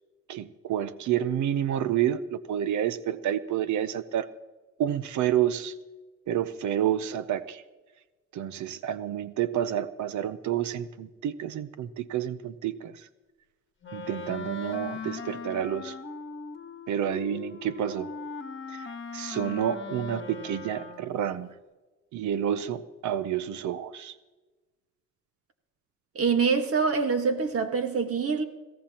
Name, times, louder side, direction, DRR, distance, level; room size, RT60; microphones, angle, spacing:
voice 1, 0.3-4.3 4.8-5.7 6.3-7.6 8.3-13.0 13.9-16.0 16.9-18.1 18.7-18.9 19.1-21.5 22.1-24.2, right 10 dB, 75° right, 0.7 m, -29 dB
Wind instrument woodwind instrument, 13.8-21.3, left 5 dB, 40° left, 1.3 m, -39 dB
voice 2, 26.1-28.4, right 5 dB, 50° right, 1.6 m, -25 dB
22.0 x 16.5 x 2.9 m
cardioid pair, 90°, 30 cm